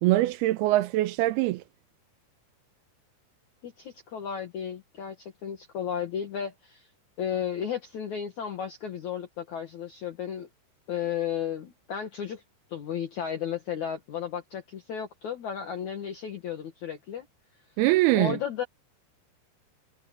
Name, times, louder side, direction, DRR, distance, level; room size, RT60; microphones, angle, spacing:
voice 1, 0.0-1.6 17.8-18.4, right 17 dB, 80° right, 2.5 m, -23 dB
voice 2, 3.6-6.9 7.2-10.5 10.9-12.4 12.7-17.3 18.1-18.6, left 8 dB, 55° left, 2.5 m, -34 dB
omnidirectional pair, 4.9 m